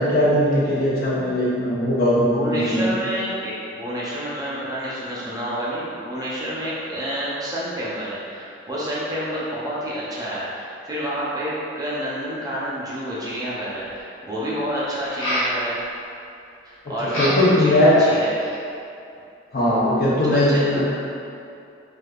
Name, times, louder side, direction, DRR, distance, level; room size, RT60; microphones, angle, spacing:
voice 1, 0.0-2.9 17.0-18.0 19.5-20.9, left 1 dB, 50° left, -7 dB, 0.7 m, -19 dB
voice 2, 2.2-15.8 16.6-18.5 20.3-20.9, equal, 20° right, -8 dB, 0.5 m, -29 dB
sound 1, 13.3-13.4 15.0-15.6 17.1-17.6 18.1-18.6, equal, 90° left, 1.2 m, -27 dB
3.4 x 2.6 x 2.3 m, 2.6 s
head